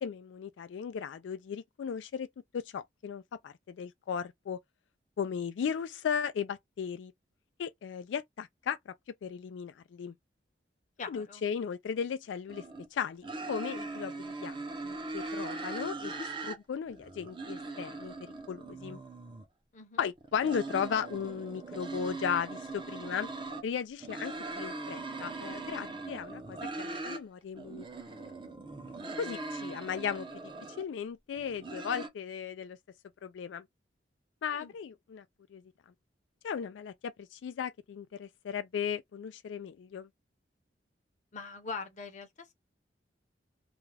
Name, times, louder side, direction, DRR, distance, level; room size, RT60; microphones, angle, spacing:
voice 1, 0.0-2.3 2.5-4.6 5.2-7.1 7.6-8.9 9.2-10.1 11.1-12.6 12.9-18.1 18.5-19.0 20.0-23.3 23.6-27.9 28.2-28.3 29.2-30.3 30.8-32.8 33.2-33.6 34.4-35.2 35.5-35.6 36.4-40.1, left 7 dB, 90° left, 0.3 m, -36 dB
voice 2, 11.0-11.5 19.7-20.0 34.5-34.7 41.3-42.5, left 4 dB, 45° left, 0.7 m, -42 dB
sound 1, 12.5-12.9 13.2-16.6 16.9-19.4 20.2-23.6 24.0-27.2 27.5-30.8 31.3-32.1, right 3 dB, 25° right, 0.6 m, -40 dB
2.4 x 2.2 x 3.2 m
head